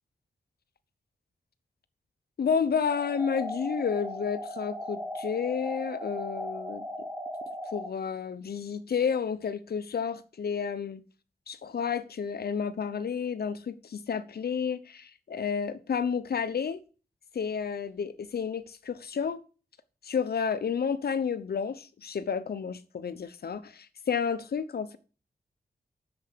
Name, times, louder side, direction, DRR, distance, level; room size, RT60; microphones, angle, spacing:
voice 1, 2.4-6.9 7.7-11.0 11.5-16.8 17.3-19.4 20.0-25.0, left 6 dB, 75° left, 0.9 m, -31 dB
sound 1, 2.9-7.9, left 1 dB, 10° right, 1.9 m, -37 dB
8.0 x 7.0 x 6.8 m
cardioid pair, 60°, 16 cm